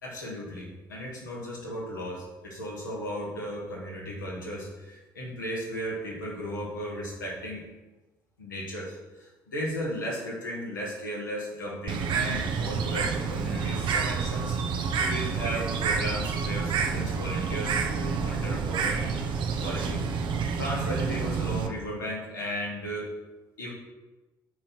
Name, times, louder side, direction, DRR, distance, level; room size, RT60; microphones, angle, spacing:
voice 1, 0.0-7.6 8.4-14.6 14.9-19.0 19.6-20.1 20.6-23.1 23.6-23.7, equal, 80° left, -4 dB, 2.4 m, -35 dB
Bird, 11.9-21.7, right 5 dB, 50° right, 0.9 m, -29 dB
10.5 x 4.4 x 5.8 m, 1.1 s
figure-of-eight pair, 50°, 10 cm